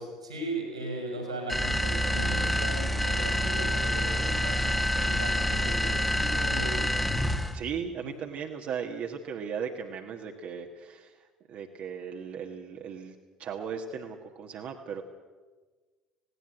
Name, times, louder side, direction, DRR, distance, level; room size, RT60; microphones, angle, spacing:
voice 1, 0.0-6.9 8.0-8.1, right 1 dB, 85° right, 2 dB, 5.6 m, -37 dB
sound 1, 1.5-7.6, equal, 5° left, 1.6 m, -27 dB
voice 2, 7.5-15.0, right 7 dB, 50° right, 2 dB, 1.6 m, -37 dB
18.5 x 17.5 x 8.9 m, 1.4 s
figure-of-eight pair, 60°, 3 cm